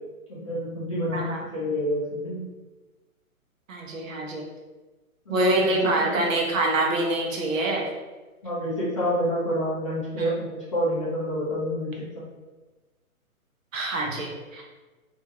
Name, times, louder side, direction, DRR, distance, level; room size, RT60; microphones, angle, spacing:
voice 1, 0.3-2.5 5.3-5.7 8.4-12.2, equal, 25° left, -10 dB, 0.4 m, -28 dB
voice 2, 1.1-1.4 3.7-4.4 5.3-7.9 10.2-10.3 13.7-14.6, right 2 dB, 60° right, 0 dB, 0.8 m, -25 dB
2.6 x 2.2 x 2.9 m, 1.2 s
hypercardioid pair, 150°, 43 cm